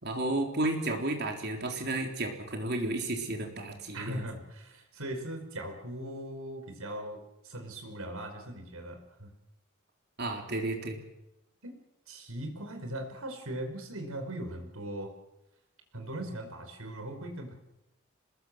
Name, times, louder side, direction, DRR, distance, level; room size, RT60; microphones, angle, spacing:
voice 1, 0.0-4.2 10.2-11.0, right 2 dB, 50° right, 3 dB, 3.9 m, -32 dB
voice 2, 3.9-9.3 11.6-11.8 12.1-15.1 15.9-17.5, right 1 dB, 80° right, 5 dB, 5.2 m, -39 dB
26.0 x 20.5 x 7.8 m, 0.92 s
head